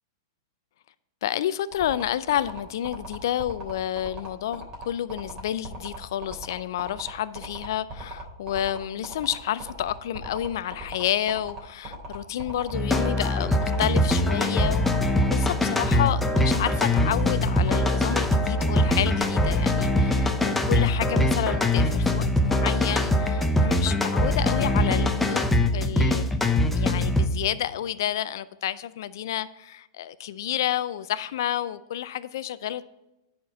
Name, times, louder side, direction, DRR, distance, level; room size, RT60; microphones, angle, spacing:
voice 1, 1.2-26.3 26.7-32.8, left 11 dB, 65° left, 0.4 m, -30 dB
sound 1, 1.7-19.5, right 1 dB, 25° right, 3.2 m, -38 dB
sound 2, 12.7-27.3, left 1 dB, 5° left, 0.8 m, -23 dB
10.0 x 4.4 x 5.3 m
hypercardioid pair, 120°, 2 cm